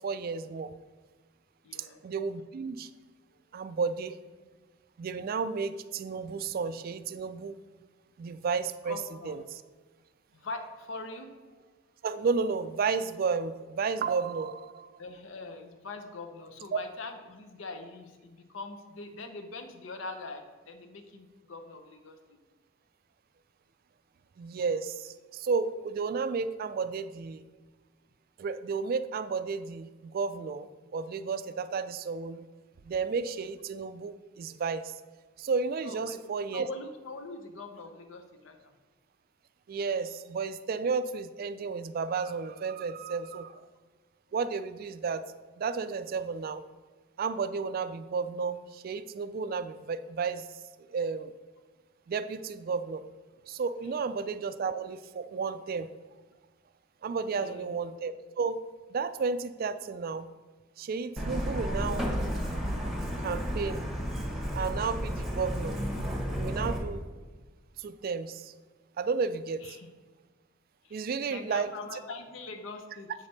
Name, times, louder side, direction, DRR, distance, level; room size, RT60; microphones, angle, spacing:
voice 1, 0.0-0.7 2.0-2.9 3.5-4.1 5.0-7.6 8.2-9.0 9.2-9.4 12.0-14.9 16.7-16.8 24.4-27.4 28.4-30.7 30.9-32.5 32.9-35.0 35.4-36.7 39.7-43.6 44.3-45.2 45.6-46.6 47.2-50.5 50.9-51.3 52.1-53.0 53.5-55.9 57.0-58.6 58.9-60.2 60.8-62.1 63.2-63.9 64.5-65.8 66.4-67.0 67.8-68.5 69.0-69.8 70.9-71.7, right 5 dB, 45° right, 12 dB, 0.3 m, -32 dB
voice 2, 1.6-2.0 8.8-9.4 10.3-11.6 15.0-22.4 35.8-36.2 36.5-38.7 54.0-54.1 57.3-57.7 69.6-69.9 70.8-73.1, left 3 dB, 70° left, 6 dB, 0.7 m, -43 dB
Truck, 61.2-66.8, equal, ahead, 1.0 m, -32 dB
8.0 x 5.1 x 4.1 m, 1.3 s
head